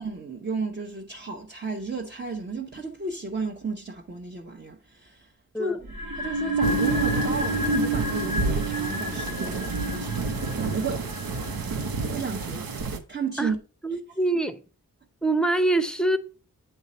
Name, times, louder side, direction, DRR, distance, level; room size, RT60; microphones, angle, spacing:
voice 1, 0.0-5.3 5.6-5.8 6.1-10.3 10.6-11.0 12.1-12.7 13.1-13.6, right 4 dB, 30° right, 0.9 m, -33 dB
sound 1, 5.9-12.8, right 1 dB, 90° right, 1.9 m, -30 dB
sound 2, 6.6-13.0, right 4 dB, 70° right, 0.8 m, -30 dB
voice 2, 13.8-14.6 15.2-16.2, right 2 dB, ahead, 0.7 m, -24 dB
8.0 x 3.3 x 4.1 m
cardioid pair, 45°, 36 cm